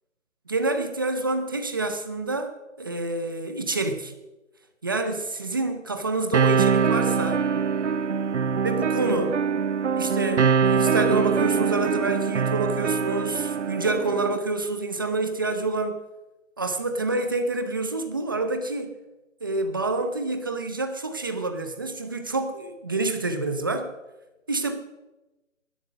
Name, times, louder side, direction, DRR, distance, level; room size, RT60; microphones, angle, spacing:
voice 1, 0.5-4.1 4.8-7.4 8.6-9.4 10.0-16.0 16.6-19.0 19.4-23.9 24.5-24.8, right 2 dB, 15° right, 8 dB, 0.8 m, -27 dB
sound 1, 6.3-14.4, right 6 dB, 60° right, 0.8 m, -23 dB
16.5 x 12.0 x 6.3 m, 1.0 s
hypercardioid pair, 165°, 39 cm